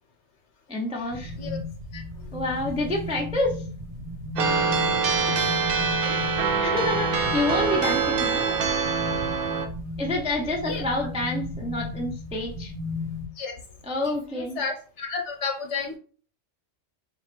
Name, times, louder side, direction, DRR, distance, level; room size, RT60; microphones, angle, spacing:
voice 1, 0.7-1.3 2.3-3.6 6.6-8.6 10.0-12.7 13.9-14.6, left 2 dB, 10° right, -1 dB, 0.4 m, -28 dB
sound 1, 1.1-13.3, left 2 dB, 75° right, 1.2 m, -35 dB
sound 2, 4.4-9.7, right 5 dB, 55° right, 0.6 m, -24 dB
voice 2, 10.0-10.8 13.4-13.5 14.0-16.0, left 5 dB, 65° left, 3 dB, 1.1 m, -33 dB
2.9 x 2.8 x 4.4 m, 0.41 s
omnidirectional pair, 1.4 m